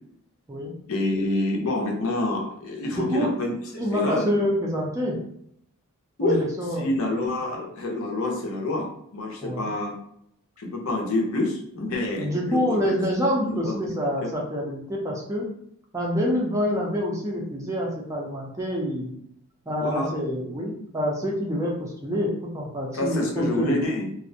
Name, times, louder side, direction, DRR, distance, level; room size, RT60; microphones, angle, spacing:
voice 1, 0.9-3.5 3.9-4.3 6.2-6.4 6.8-9.9 10.6-12.8 13.6-13.7 14.2-14.3 19.8-20.1 22.9-24.1, left 2 dB, 70° left, 1 dB, 0.6 m, -27 dB
voice 2, 2.9-3.4 3.8-5.2 6.2-6.9 9.4-9.7 12.2-15.5 15.9-19.1 19.7-23.8, equal, 15° right, -3 dB, 0.4 m, -27 dB
2.4 x 2.1 x 2.6 m, 0.71 s
head